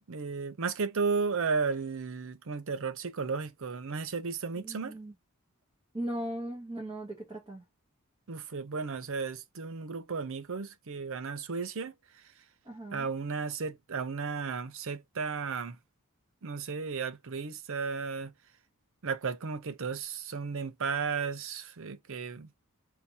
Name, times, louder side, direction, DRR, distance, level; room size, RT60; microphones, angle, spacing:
voice 1, 0.1-5.0 8.3-11.9 12.9-15.8 16.4-18.3 19.0-22.5, right 5 dB, 65° right, 0.6 m, -34 dB
voice 2, 4.6-5.1 5.9-7.6 12.6-13.1, right 1 dB, 20° right, 1.4 m, -38 dB
3.8 x 2.8 x 4.2 m
head